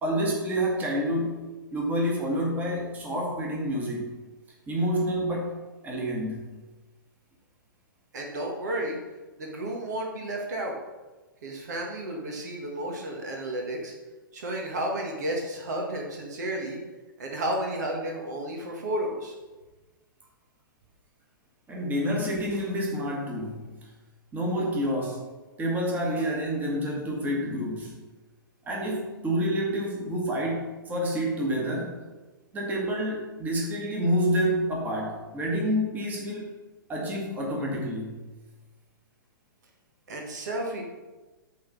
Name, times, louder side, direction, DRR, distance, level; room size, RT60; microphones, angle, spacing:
voice 1, 0.0-4.2 4.7-5.6 5.8-6.5 21.7-23.9 24.3-25.3 25.6-28.0 28.6-32.0 32.5-36.5 36.9-38.3, equal, 15° right, -2 dB, 1.8 m, -28 dB
voice 2, 8.1-9.0 9.4-10.7 11.4-13.9 14.3-16.8 17.2-19.3 40.1-40.8, right 1 dB, 50° right, 0 dB, 1.6 m, -32 dB
8.2 x 4.0 x 6.2 m, 1.2 s
figure-of-eight pair, 115°, 12 cm